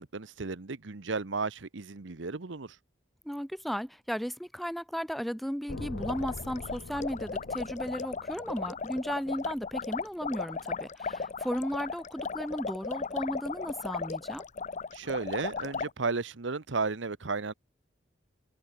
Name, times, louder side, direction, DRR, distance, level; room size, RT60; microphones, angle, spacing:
voice 1, 0.0-2.8 14.9-17.5, right 4 dB, 70° right, 1.0 m, -34 dB
voice 2, 3.3-14.4, equal, ahead, 0.4 m, -35 dB
sound 1, 5.7-9.8, left 2 dB, 85° left, 1.0 m, -44 dB
sound 2, 6.0-15.9, left 4 dB, 40° left, 0.7 m, -36 dB
head